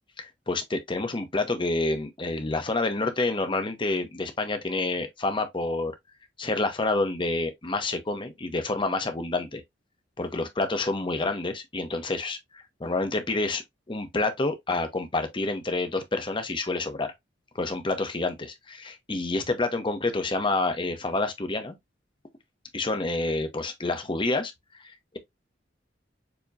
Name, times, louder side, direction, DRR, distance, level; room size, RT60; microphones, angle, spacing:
voice 1, 0.2-5.9 6.4-9.6 10.2-12.4 12.8-13.6 13.9-17.1 17.5-21.7 22.7-24.5, left 2 dB, 25° left, 0.8 m, -28 dB
7.0 x 2.9 x 2.6 m
head